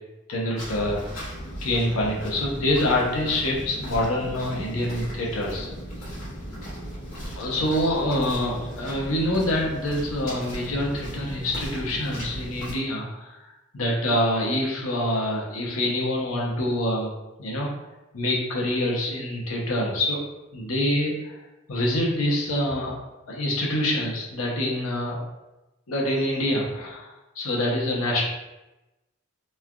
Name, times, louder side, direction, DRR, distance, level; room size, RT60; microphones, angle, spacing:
voice 1, 0.3-1.0 1.6-5.7 7.3-17.1 17.4-17.7 18.1-20.2 20.5-21.4 21.7-23.0 23.3-25.2 25.9-28.3, left 1 dB, 85° left, -2 dB, 0.7 m, -26 dB
sound 1, 0.6-12.7, equal, 65° left, 1.2 m, -36 dB
3.2 x 2.4 x 2.2 m, 1.0 s
head